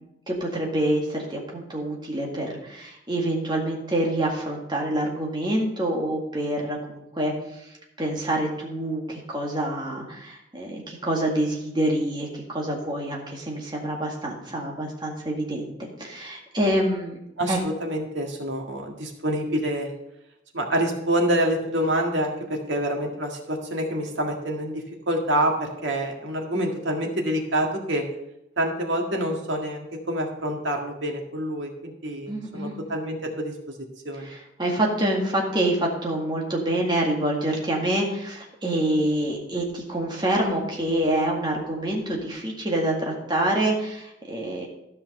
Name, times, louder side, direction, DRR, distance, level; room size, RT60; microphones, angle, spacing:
voice 1, 0.0-7.7 8.0-17.2 17.5-17.6 32.3-32.8 34.2-44.7, right 1 dB, 25° right, -1 dB, 1.9 m, -26 dB
voice 2, 17.4-19.9 20.5-28.0 28.6-33.5 34.1-34.3, right 1 dB, 70° right, 1 dB, 1.8 m, -27 dB
13.0 x 5.6 x 5.3 m, 0.86 s
head